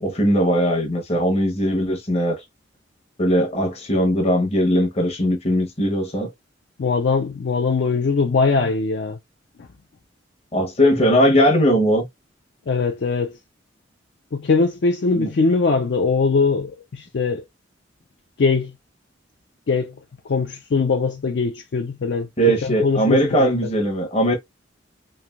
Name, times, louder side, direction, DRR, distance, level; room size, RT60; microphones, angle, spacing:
voice 1, 0.0-2.4 3.2-6.3 10.5-12.0 15.1-15.3 22.4-24.4, equal, 30° left, 0.8 m, -19 dB
voice 2, 6.8-9.2 12.7-13.4 14.3-17.4 18.4-18.7 19.7-19.9 20.3-23.5, left 4 dB, 60° left, 0.4 m, -21 dB
3.2 x 2.5 x 2.2 m
head